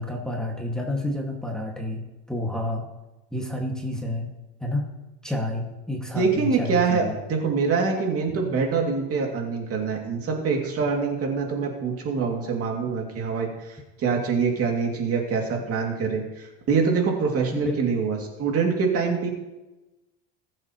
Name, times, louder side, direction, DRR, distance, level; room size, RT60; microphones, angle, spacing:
voice 1, 0.0-2.0 2.3-2.8 3.3-4.3 4.6-4.9 5.2-7.2 17.5-17.8, left 1 dB, ahead, -1 dB, 1.9 m, -29 dB
voice 2, 6.1-7.0 7.3-19.3, right 5 dB, 45° right, 1 dB, 2.5 m, -25 dB
19.5 x 7.7 x 3.0 m, 1.0 s
cardioid pair, 120°, 32 cm